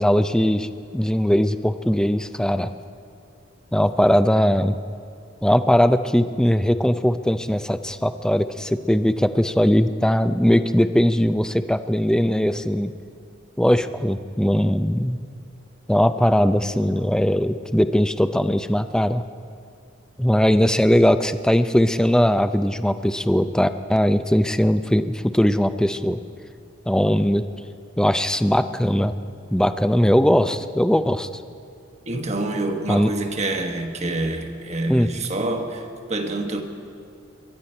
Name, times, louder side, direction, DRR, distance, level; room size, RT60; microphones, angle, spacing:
voice 1, 0.0-2.7 3.7-4.7 5.4-12.9 13.6-15.2 15.9-19.2 20.2-26.2 26.9-27.4 28.0-29.1 29.5-31.3 32.9-33.1 34.9-35.1, equal, 5° left, 11 dB, 0.4 m, -20 dB
voice 2, 32.1-36.6, right 2 dB, 35° right, 4 dB, 1.2 m, -27 dB
22.5 x 11.5 x 4.4 m, 2.5 s
head